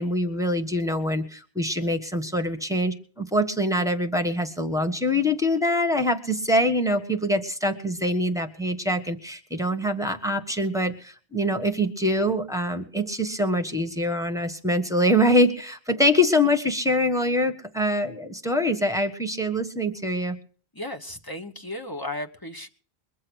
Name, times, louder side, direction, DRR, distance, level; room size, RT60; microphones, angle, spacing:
voice 1, 0.0-20.4, left 1 dB, 5° right, 5 dB, 1.4 m, -24 dB
voice 2, 20.7-22.7, left 1 dB, 20° left, 4 dB, 1.2 m, -35 dB
22.5 x 7.7 x 6.3 m, 0.43 s
omnidirectional pair, 1.1 m